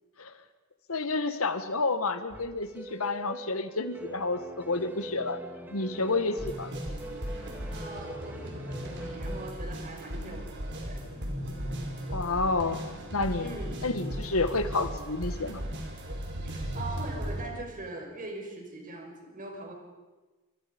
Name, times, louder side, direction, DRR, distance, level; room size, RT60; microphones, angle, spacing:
voice 1, 0.9-5.4 5.7-6.7 12.1-12.8 13.1-13.5 13.8-15.6, left 3 dB, 80° left, 10 dB, 1.8 m, -30 dB
sound 1, 2.3-9.5, right 1 dB, 10° right, 1.7 m, -44 dB
sound 2, 6.4-17.4, equal, 55° right, 4.8 m, -36 dB
voice 2, 7.7-11.0 13.4-13.8 16.5-19.7, right 2 dB, 40° right, 2 dB, 5.7 m, -41 dB
28.0 x 25.0 x 5.4 m, 1.2 s
head